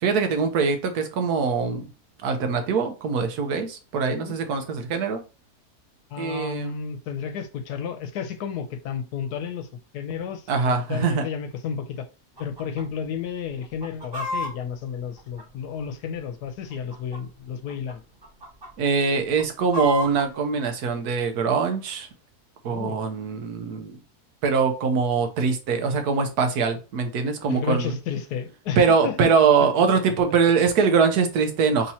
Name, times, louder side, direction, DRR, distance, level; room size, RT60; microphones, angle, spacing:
voice 1, 0.0-1.9 2.2-5.2 6.2-6.8 10.5-11.2 18.8-22.1 22.6-24.0 24.4-27.9 28.8-31.9, right 5 dB, 80° right, 1.3 m, -23 dB
voice 2, 6.1-9.7 9.9-12.1 12.4-18.0 22.7-23.1 27.5-29.3, left 7 dB, 80° left, 1.2 m, -32 dB
Chicken rooster, 12.4-12.8 13.1-13.2 13.6-15.9 16.6-17.4 17.7-17.9 18.2-18.7 19.1-20.3, right 1 dB, 25° right, 0.6 m, -32 dB
3.7 x 2.8 x 4.3 m
omnidirectional pair, 1.7 m